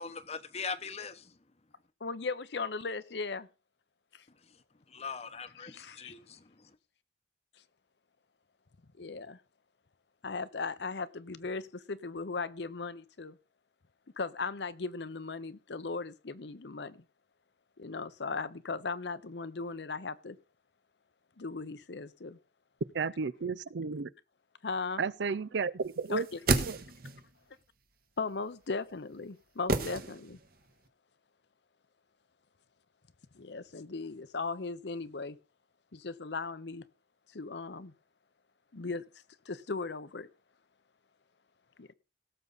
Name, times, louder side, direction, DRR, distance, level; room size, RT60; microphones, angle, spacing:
voice 1, 0.0-1.3 4.9-6.7, left 5 dB, 35° left, 0.9 m, -41 dB
voice 2, 2.0-3.5 4.1-4.2 5.5-6.1 9.0-9.4 10.2-13.4 14.2-17.0 17.8-20.4 21.4-22.4 24.6-25.0 26.1-26.4 28.2-30.4 33.3-35.4 35.9-36.8 37.3-37.9 38.7-39.1 39.5-40.3 41.8-41.9, left 4 dB, 75° left, 0.8 m, -37 dB
voice 3, 22.9-24.1 25.0-26.3 26.6-26.8, right 5 dB, 85° right, 0.5 m, -33 dB
sound 1, 26.1-27.3 29.7-30.6 30.9-31.0, right 3 dB, 55° right, 1.4 m, -31 dB
17.5 x 7.0 x 4.0 m
head